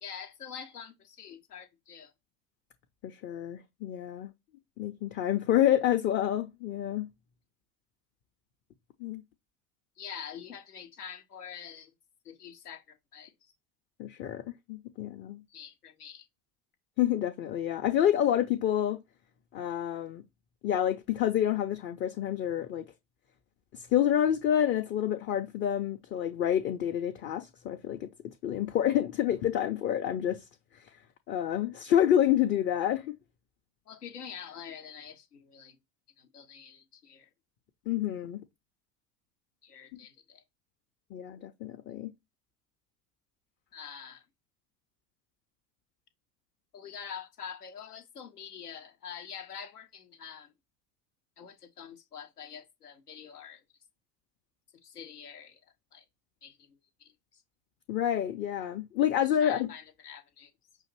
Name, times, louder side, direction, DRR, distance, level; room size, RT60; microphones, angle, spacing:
voice 1, 0.0-2.1 10.0-11.9 12.2-13.5 15.5-16.3 33.9-35.8 36.2-37.3 39.6-40.4 43.7-44.2 46.7-50.5 51.4-53.6 54.8-55.6 55.9-56.0 56.4-57.4 59.2-60.5, left 7 dB, 85° left, 0.7 m, -46 dB
voice 2, 3.0-4.3 4.8-7.1 9.0-9.2 14.0-14.4 14.7-15.4 17.0-19.0 19.5-20.2 20.6-22.9 23.7-30.4 31.3-33.2 37.9-38.4 41.1-42.1 57.9-59.7, left 10 dB, 25° left, 0.5 m, -28 dB
5.5 x 2.5 x 3.1 m
figure-of-eight pair, 75°, 45 cm